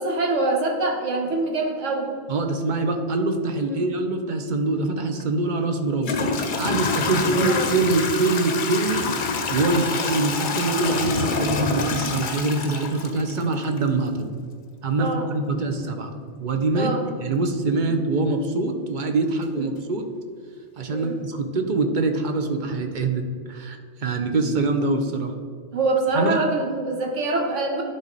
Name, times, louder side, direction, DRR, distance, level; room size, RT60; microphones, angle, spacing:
voice 1, 0.0-2.1 3.7-3.8 7.0-7.7 15.0-15.3 16.7-17.0 19.6-19.7 20.9-21.2 25.7-27.8, right 2 dB, 85° right, 1 dB, 1.5 m, -25 dB
voice 2, 2.3-6.1 6.6-9.1 9.5-14.3 14.8-16.9 17.2-20.1 20.8-25.3 26.1-26.4, right 3 dB, 50° right, 6 dB, 0.7 m, -24 dB
Toilet flush / Trickle dribble, 5.2-5.3 6.0-13.8, left 4 dB, 50° left, 0.7 m, -27 dB
10.5 x 4.0 x 4.0 m, 2.1 s
omnidirectional pair, 1.2 m